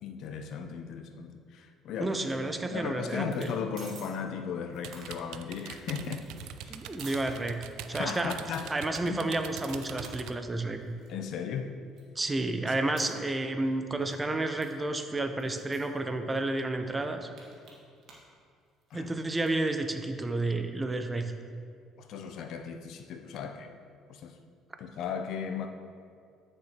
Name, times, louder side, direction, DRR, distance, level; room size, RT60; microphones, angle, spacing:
voice 1, 0.0-2.2 2.7-6.3 6.6-6.8 7.9-8.7 9.0-9.2 11.1-11.8 18.9-19.1 22.0-23.7 24.1-24.4 24.8-25.7, left 7 dB, 65° left, 6 dB, 0.6 m, -36 dB
voice 2, 2.0-3.5 6.7-7.6 7.9-8.3 8.7-10.8 12.2-17.3 18.9-21.3, right 2 dB, 20° right, 7 dB, 0.6 m, -31 dB
sound 1, 2.3-2.9 3.2-3.5 3.8-4.1 4.5-7.9 8.3-8.6 9.1-11.1 11.6-11.7 12.0-13.7 14.0-14.2 14.6-14.7 14.9-15.0 15.4-16.0 16.6-16.7 16.9-18.3 18.6-19.6, right 4 dB, 60° right, 1.8 m, -52 dB
sound 2, 4.8-10.3, right 10 dB, 80° right, 0.3 m, -43 dB
9.5 x 6.6 x 2.9 m, 2.2 s
cardioid pair, 100°, 0 cm